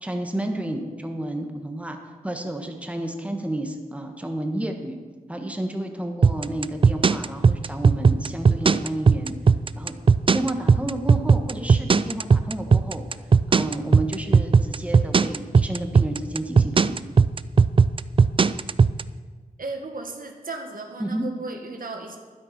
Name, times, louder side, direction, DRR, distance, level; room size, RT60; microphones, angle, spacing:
voice 1, 0.0-2.0 2.2-5.0 5.3-9.3 9.7-9.9 10.3-13.0 13.5-17.0 21.0-21.3, right 1 dB, 10° right, 4 dB, 1.4 m, -31 dB
sound 1, 6.2-19.0, right 5 dB, 35° right, 0.4 m, -16 dB
voice 2, 19.6-22.2, right 3 dB, 70° right, 3 dB, 1.7 m, -35 dB
12.0 x 10.0 x 5.9 m, 1.4 s
wide cardioid pair, 85°, 15 cm